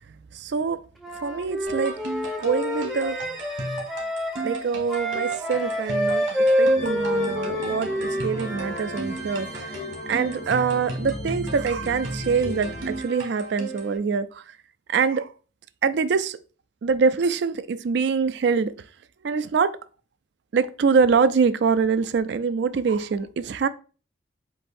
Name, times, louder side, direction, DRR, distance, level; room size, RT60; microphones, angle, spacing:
voice 1, 0.1-0.8 1.2-1.9 2.4-3.2 4.4-9.8 10.1-14.4 14.9-15.3 15.8-16.4 16.8-18.7 19.2-19.7 20.5-23.7, right 5 dB, 55° right, 0.3 m, -24 dB
Wind instrument woodwind instrument, 1.0-9.0, equal, ahead, 0.6 m, -27 dB
sound 1, 1.7-14.0, right 2 dB, 85° right, 1.5 m, -35 dB
sound 2, 6.7-13.0, left 2 dB, 40° left, 0.6 m, -37 dB
7.8 x 2.6 x 2.6 m
head